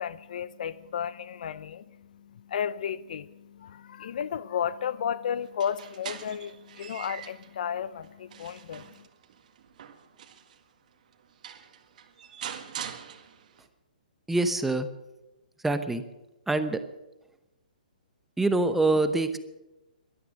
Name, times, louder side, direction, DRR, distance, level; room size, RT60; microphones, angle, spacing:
voice 1, 0.0-9.1, left 8 dB, 60° left, 0.6 m, -33 dB
sound 1, 5.4-7.5 8.0-10.6 11.1-11.2 11.4-13.7, right 8 dB, 55° right, 1.8 m, -43 dB
voice 2, 14.3-14.9 15.6-16.0 16.5-16.8 18.4-19.4, right 2 dB, 5° right, 0.9 m, -25 dB
17.5 x 12.5 x 6.4 m
hypercardioid pair, 145°, 5 cm